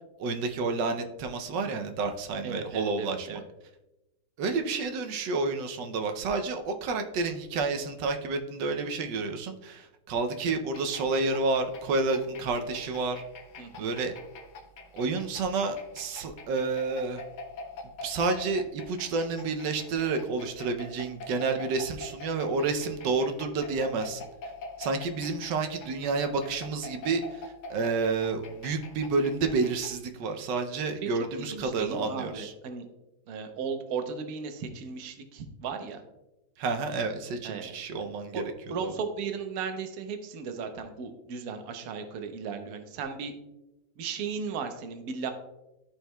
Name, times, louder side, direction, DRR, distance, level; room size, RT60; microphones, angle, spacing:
voice 1, 0.2-3.4 4.4-13.2 13.8-14.1 14.9-17.2 18.0-24.2 24.8-27.4 27.7-32.5 36.6-38.4 38.8-38.9, right 3 dB, 85° right, 6 dB, 1.3 m, -30 dB
voice 2, 2.4-3.4 13.6-13.9 31.0-31.1 31.4-32.9 33.3-36.0 37.4-38.4 38.7-43.3 44.0-45.3, right 6 dB, 65° right, 6 dB, 1.1 m, -36 dB
sound 1, 10.7-30.0, left 3 dB, 75° left, 1.4 m, -46 dB
13.5 x 4.5 x 2.2 m, 0.96 s
omnidirectional pair, 1.9 m